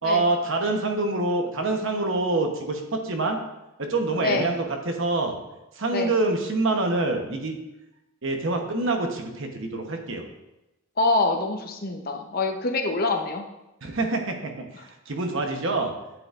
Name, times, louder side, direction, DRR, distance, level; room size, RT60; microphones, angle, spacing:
voice 1, 0.0-3.4 3.8-5.4 5.7-7.6 8.2-10.3 13.8-15.9, right 2 dB, 55° right, 4 dB, 1.0 m, -26 dB
voice 2, 11.0-13.4, left 3 dB, 40° left, 4 dB, 0.8 m, -25 dB
9.7 x 8.0 x 2.5 m, 0.95 s
head